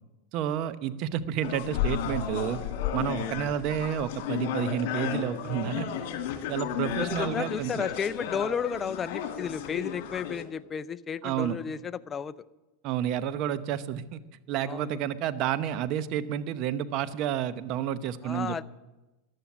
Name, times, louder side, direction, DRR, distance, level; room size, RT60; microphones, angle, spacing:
voice 1, 0.3-2.6 2.9-5.9 6.5-7.8 11.2-11.6 12.8-14.2 14.5-18.6, right 10 dB, 50° right, 13 dB, 0.8 m, -30 dB
sound 1, 1.4-10.4, left 9 dB, 65° left, 2.3 m, -33 dB
voice 2, 7.0-12.4 14.7-15.0 18.2-18.6, left 7 dB, 25° left, 15 dB, 0.5 m, -33 dB
14.5 x 11.0 x 7.2 m, 1.1 s
hypercardioid pair, 110°, 0 cm